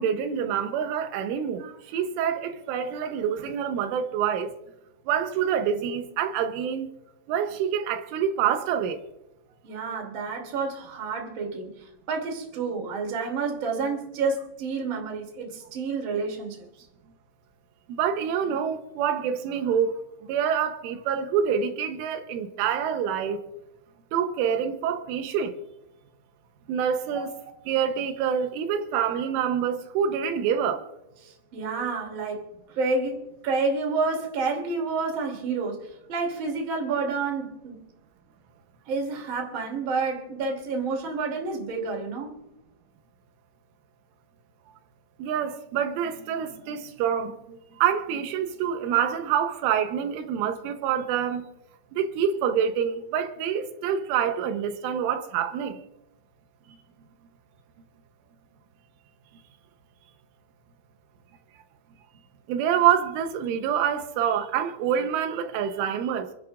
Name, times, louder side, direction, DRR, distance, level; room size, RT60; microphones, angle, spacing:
voice 1, 0.0-4.5 5.1-6.9 7.3-9.0 17.9-20.0 20.3-23.4 24.1-25.6 26.7-27.3 27.7-30.9 45.2-51.5 51.9-55.8 62.5-66.3, right 8 dB, 90° right, 3.5 m, -26 dB
voice 2, 9.6-16.9 27.1-27.3 31.2-37.8 38.8-42.4, right 4 dB, 30° right, 2.9 m, -29 dB
30.0 x 11.0 x 2.5 m
omnidirectional pair, 5.5 m